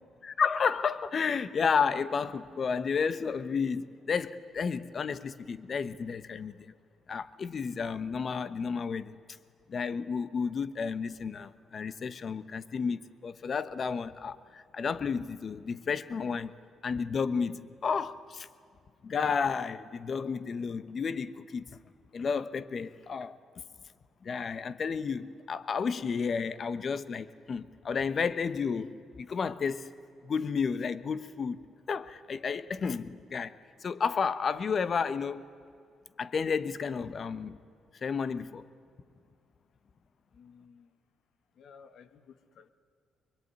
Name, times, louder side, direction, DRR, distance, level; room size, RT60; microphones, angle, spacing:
voice 1, 0.2-6.7 7.1-9.2 9.7-16.5 16.8-18.5 19.0-21.7 22.1-23.4 24.2-29.9 30.2-31.6 31.9-33.5 33.8-35.4 36.2-37.6 38.0-38.7, left 5 dB, 45° left, 1.1 m, -32 dB
voice 2, 40.3-40.9 41.6-42.7, left 6 dB, 70° left, 1.6 m, -55 dB
25.0 x 23.0 x 9.5 m
cardioid pair, 90°, 0 cm